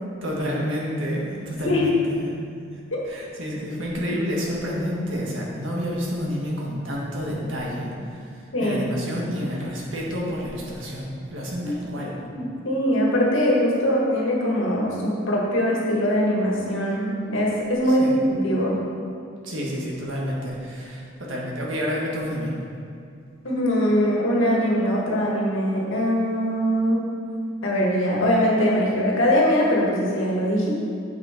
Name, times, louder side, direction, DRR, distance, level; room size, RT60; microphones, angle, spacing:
voice 1, 0.2-2.3 3.1-12.2 17.8-18.1 19.4-22.5, equal, 80° right, -3 dB, 1.6 m, -29 dB
voice 2, 12.3-18.8 23.4-27.0 27.6-30.7, equal, 80° left, -3 dB, 1.7 m, -22 dB
7.8 x 5.8 x 4.5 m, 2.5 s
head